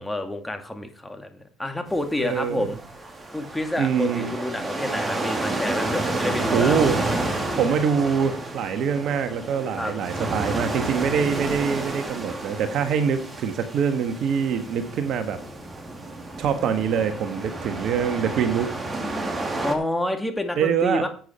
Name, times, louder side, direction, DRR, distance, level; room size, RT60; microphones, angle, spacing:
voice 1, 0.0-2.8 3.3-6.8 9.7-10.0 19.6-21.1, left 1 dB, 10° left, 6 dB, 2.3 m, -29 dB
sound 1, 1.9-19.7, right 2 dB, 20° right, 2.8 m, -30 dB
voice 2, 2.2-2.7 3.8-4.3 6.5-7.0 7.6-15.4 16.4-18.7 20.6-21.0, right 7 dB, 60° right, 9 dB, 1.7 m, -24 dB
11.5 x 8.5 x 4.5 m, 0.41 s
hypercardioid pair, 75°, 0 cm